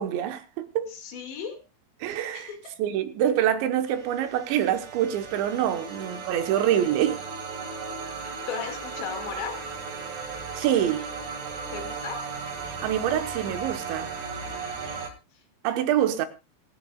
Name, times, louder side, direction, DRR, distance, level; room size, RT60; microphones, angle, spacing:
voice 1, 0.0-0.9 2.0-2.5 2.8-7.2 8.2-8.4 10.5-11.1 12.6-14.1 14.9-15.0 15.6-16.3, right 10 dB, 85° right, 3.6 m, -26 dB
voice 2, 0.9-1.6 2.3-2.7 5.8-5.9 8.5-9.7 11.7-12.2, left 7 dB, 75° left, 4.5 m, -36 dB
sound 1, 3.8-15.1, right 5 dB, 50° right, 3.1 m, -36 dB
26.5 x 9.2 x 2.4 m
omnidirectional pair, 5.1 m